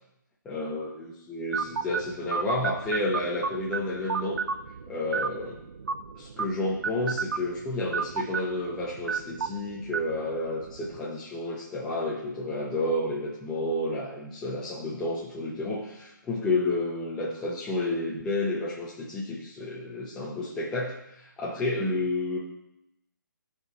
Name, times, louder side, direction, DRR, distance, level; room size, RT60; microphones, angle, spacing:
voice 1, 0.5-4.4 4.9-5.6 6.1-22.4, left 2 dB, 5° left, -6 dB, 0.6 m, -31 dB
sound 1, 1.5-11.0, right 5 dB, 60° right, 0.5 m, -34 dB
12.5 x 4.7 x 4.1 m, 0.85 s
hypercardioid pair, 170°, 11 cm